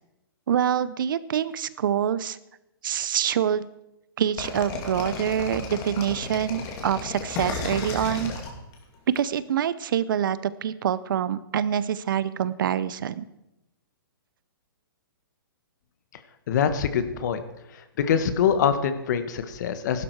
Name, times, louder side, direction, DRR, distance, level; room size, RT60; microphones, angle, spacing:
voice 1, 0.5-2.4 2.8-3.7 4.2-8.3 9.1-13.2, right 9 dB, 60° right, 17 dB, 0.7 m, -26 dB
sound 1, 4.4-9.2, left 4 dB, 30° left, 2.4 m, -33 dB
voice 2, 16.5-17.4 17.7-20.0, left 7 dB, 50° left, 10 dB, 1.4 m, -24 dB
15.5 x 12.0 x 4.7 m, 0.89 s
hypercardioid pair, 150°, 12 cm